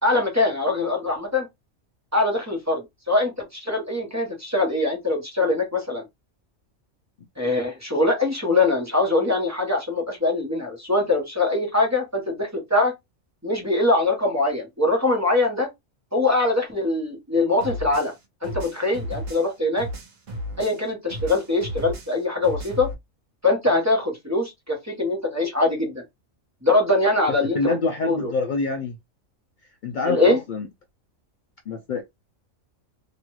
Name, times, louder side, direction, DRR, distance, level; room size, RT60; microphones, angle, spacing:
voice 1, 0.0-1.5 2.1-6.0 7.4-12.9 13.4-15.7 16.1-18.1 18.4-19.9 20.6-22.9 23.4-26.0 26.6-27.7 28.0-28.3 30.0-30.4, left 2 dB, 15° right, 0.9 m, -22 dB
sound 1, 17.6-20.9 21.1-22.9, equal, 70° right, 1.3 m, -34 dB
voice 2, 27.5-29.0 29.8-30.7 31.7-32.0, left 3 dB, 75° left, 0.4 m, -26 dB
3.0 x 2.4 x 3.0 m
omnidirectional pair, 1.4 m